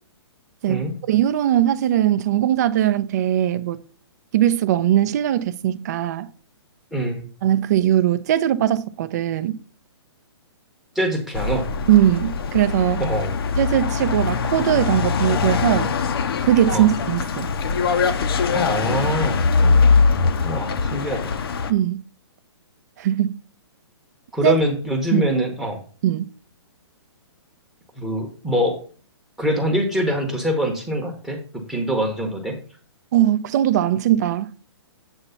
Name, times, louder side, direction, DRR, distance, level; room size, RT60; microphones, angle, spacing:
voice 1, 0.6-3.8 4.3-6.3 7.4-9.6 11.9-13.0 13.6-15.9 16.5-17.5 19.6-19.8 21.7-22.0 23.0-23.4 24.4-24.6 25.1-25.3 26.0-26.2 33.1-34.5, right 12 dB, 40° right, 0.5 m, -20 dB
voice 2, 6.9-7.3 10.9-11.7 13.0-13.3 16.7-16.9 18.5-19.4 20.4-21.3 24.3-25.8 28.0-28.8 29.4-31.4 31.7-32.6, equal, 5° right, 0.9 m, -24 dB
sound 1, 11.3-21.7, left 5 dB, 60° left, 0.8 m, -22 dB
7.9 x 3.0 x 5.6 m
hypercardioid pair, 160°, 14 cm